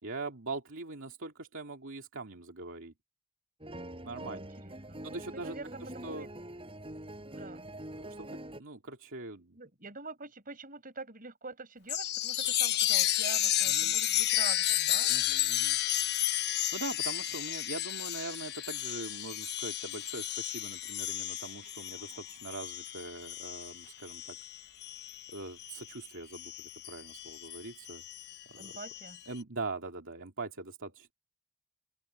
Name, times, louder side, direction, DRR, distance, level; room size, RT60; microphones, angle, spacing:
voice 1, 0.0-2.9 4.0-4.5 5.0-6.3 7.3-7.4 7.9-9.6 13.7-14.0 15.1-15.8 16.4-24.4 25.3-26.5 26.9-28.0 28.5-28.8 29.3-31.1, right 3 dB, 60° right, 2.7 m, -42 dB
sound 1, 3.6-8.6, right 1 dB, 25° right, 7.0 m, -44 dB
voice 2, 4.2-6.3 7.4-7.7 9.5-15.1 28.6-29.2, right 3 dB, 40° right, 6.2 m, -45 dB
Chime, 11.9-25.9 26.3-29.2, left 13 dB, 50° left, 0.9 m, -32 dB
open air
head